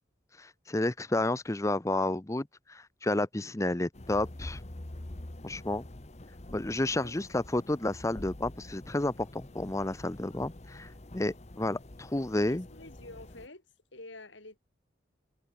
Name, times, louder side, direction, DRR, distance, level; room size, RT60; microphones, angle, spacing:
voice 1, 0.4-4.6 5.4-5.9 6.5-12.7, left 2 dB, 15° left, 0.7 m, -31 dB
sound 1, 3.9-13.5, left 1 dB, 35° left, 1.2 m, -46 dB
voice 2, 12.3-14.6, left 2 dB, 85° left, 6.2 m, -49 dB
head